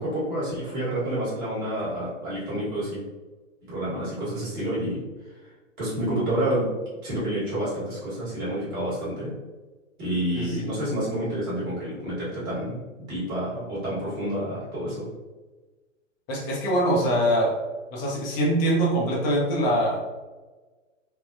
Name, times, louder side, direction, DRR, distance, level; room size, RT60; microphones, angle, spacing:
voice 1, 0.0-3.0 3.7-5.0 5.4-5.5 5.8-6.7 7.0-9.3 10.0-15.1, right 1 dB, 40° right, -9 dB, 1.4 m, -29 dB
voice 2, 16.3-17.6 17.9-20.0, right 1 dB, 20° left, -4 dB, 0.6 m, -23 dB
3.6 x 2.1 x 2.5 m, 1.3 s
figure-of-eight pair, 115°, 39 cm